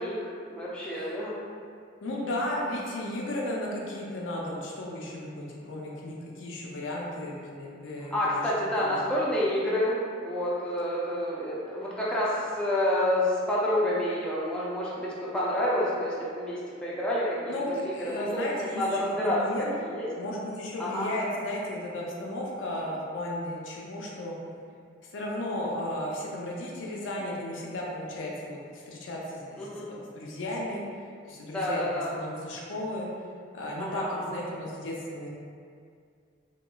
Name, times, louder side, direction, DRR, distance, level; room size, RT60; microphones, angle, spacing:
voice 1, 0.0-1.3 8.1-17.6 18.0-18.4 18.7-19.4 19.8-20.1 20.8-21.1 29.6-29.9 31.5-32.1 33.8-34.3, left 1 dB, 5° left, -8 dB, 0.3 m, -28 dB
voice 2, 2.0-8.5 8.8-9.0 17.5-19.7 20.2-24.4 25.0-30.8 31.3-33.1 33.5-35.3, left 1 dB, 85° left, -3 dB, 0.5 m, -34 dB
2.8 x 2.3 x 2.2 m, 2.3 s
head